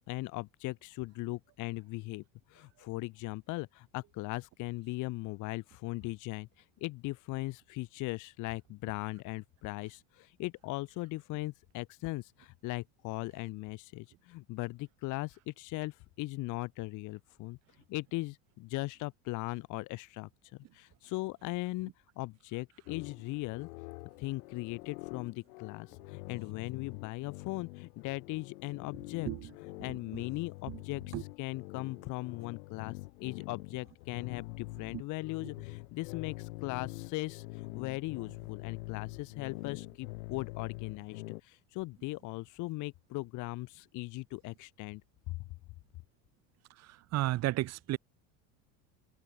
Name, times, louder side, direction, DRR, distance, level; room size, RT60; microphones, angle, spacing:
voice 1, 0.0-2.2 2.5-17.6 17.9-20.3 20.7-21.9 22.2-23.7 24.2-29.3 29.6-45.0, left 21 dB, 50° left, 0.8 m, -39 dB
sound 1, 22.9-41.4, left 25 dB, 85° left, 1.4 m, -45 dB
voice 2, 46.8-48.0, right 16 dB, 40° right, 0.7 m, -33 dB
open air
supercardioid pair, 125°, 40 cm